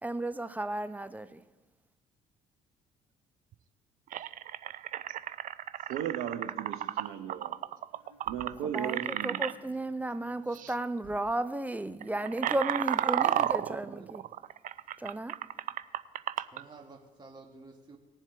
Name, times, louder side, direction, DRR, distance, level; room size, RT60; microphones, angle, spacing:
voice 1, 0.0-1.4 8.7-14.2 15.0-15.4, right 2 dB, 10° right, 0.7 m, -34 dB
sound 1, 3.5-3.6 4.1-9.5 10.5-10.7 11.0-11.3 11.8-16.6, right 11 dB, 50° right, 0.5 m, -33 dB
voice 2, 5.8-7.6 8.3-9.4, right 9 dB, 70° right, 0.9 m, -36 dB
sound 2, 7.9-11.8, left 1 dB, 90° left, 1.4 m, -61 dB
voice 3, 12.3-12.8 13.2-14.2 16.5-18.0, right 3 dB, 25° right, 1.8 m, -51 dB
19.5 x 7.2 x 3.4 m
hypercardioid pair, 55°, 17 cm